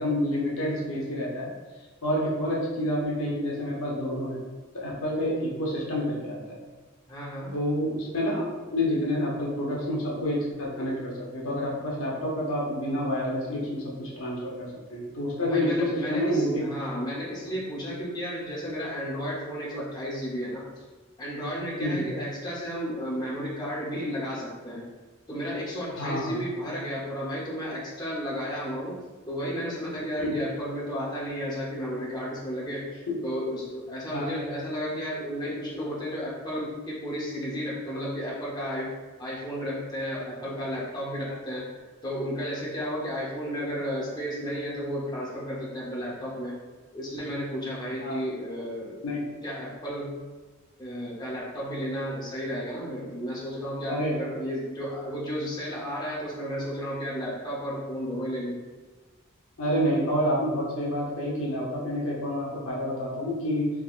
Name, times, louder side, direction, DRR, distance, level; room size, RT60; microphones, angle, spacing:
voice 1, 0.0-1.5 2.0-4.4 4.7-6.6 7.5-16.7 21.8-22.1 26.0-26.3 30.2-30.4 33.1-33.2 34.1-34.3 41.3-41.4 48.0-48.2 49.0-49.2 53.9-54.4 59.6-63.7, equal, 70° left, -4 dB, 0.8 m, -28 dB
voice 2, 7.1-7.6 15.5-20.6 21.2-24.8 25.3-29.0 29.3-32.9 33.2-38.9 39.2-41.7 42.0-46.6 46.9-50.2 50.8-58.6, equal, 20° left, -7 dB, 0.7 m, -33 dB
3.6 x 2.8 x 2.4 m, 1.3 s
head